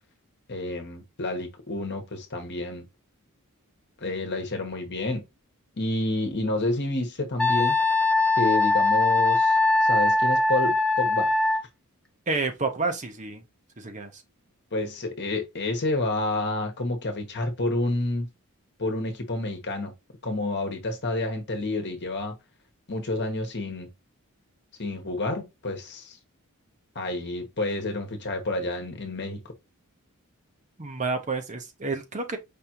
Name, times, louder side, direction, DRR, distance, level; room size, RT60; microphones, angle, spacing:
voice 1, 0.5-2.8 4.0-5.2 5.8-7.7 8.4-9.6 9.9-11.3 14.7-18.3 18.8-19.9 20.2-22.4 22.9-23.9 24.8-26.2 26.9-29.4, left 2 dB, 50° left, 1.3 m, -29 dB
Wind instrument woodwind instrument, 7.4-11.6, left 2 dB, 5° left, 0.6 m, -21 dB
voice 2, 12.3-13.4 13.8-14.2 30.8-32.4, right 3 dB, 35° right, 0.8 m, -29 dB
5.4 x 3.3 x 2.9 m
head